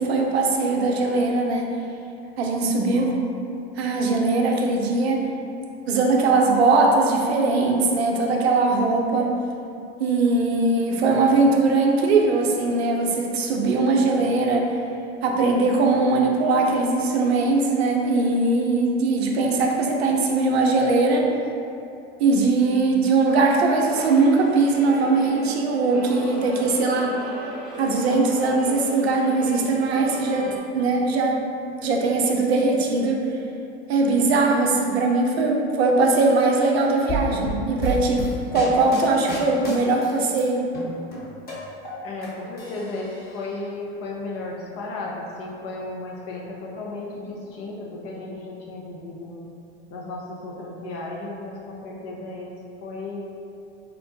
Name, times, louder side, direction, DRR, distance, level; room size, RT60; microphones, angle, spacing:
voice 1, 0.0-1.7 2.4-3.2 3.8-5.3 5.9-9.3 10.0-14.7 15.2-21.3 22.2-27.2 27.8-30.5 30.7-31.5 31.8-33.2 33.9-38.3 38.5-40.7, right 3 dB, 85° right, 1 dB, 0.5 m, -20 dB
sound 1, 23.7-30.6, equal, ahead, 1.1 m, -38 dB
sound 2, 37.1-40.4 40.7-42.3 42.6-43.5, equal, 30° left, 1.1 m, -31 dB
voice 2, 42.0-49.4 49.9-52.5 52.8-53.3, left 2 dB, 50° left, -3 dB, 0.7 m, -34 dB
4.2 x 2.2 x 2.6 m, 2.6 s
hypercardioid pair, 80°, 31 cm